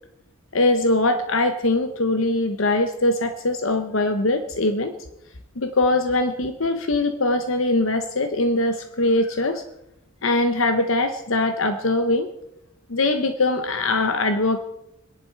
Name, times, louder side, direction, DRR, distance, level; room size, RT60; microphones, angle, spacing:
voice 1, 0.5-4.9 5.6-9.6 10.2-12.3 12.9-14.6, left 2 dB, 65° left, 8 dB, 1.0 m, -22 dB
26.5 x 11.0 x 4.6 m, 0.84 s
head